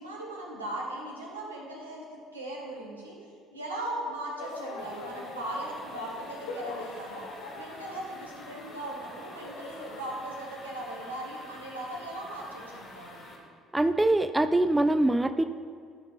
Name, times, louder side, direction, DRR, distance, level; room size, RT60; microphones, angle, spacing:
voice 1, 0.0-2.0 2.3-3.2 3.5-7.2 7.6-13.2, right 1 dB, 85° right, -3 dB, 1.6 m, -38 dB
sound 1, 4.4-10.1, left 2 dB, 65° left, 1.1 m, -42 dB
sound 2, 4.8-13.4, left 2 dB, 45° left, 1.8 m, -49 dB
voice 2, 13.7-15.4, right 2 dB, 10° right, 9 dB, 0.4 m, -23 dB
12.5 x 5.6 x 3.4 m, 2.2 s
figure-of-eight pair, 55°, 0 cm